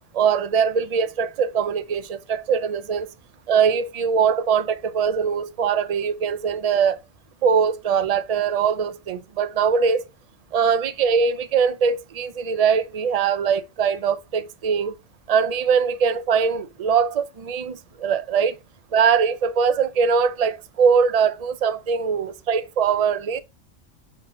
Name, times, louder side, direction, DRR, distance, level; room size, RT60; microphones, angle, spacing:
voice 1, 0.1-3.1 3.5-7.0 7.4-10.0 10.5-14.9 15.3-18.6 18.9-23.4, right 6 dB, 40° right, 0.6 m, -22 dB
5.2 x 3.9 x 5.4 m
omnidirectional pair, 1.3 m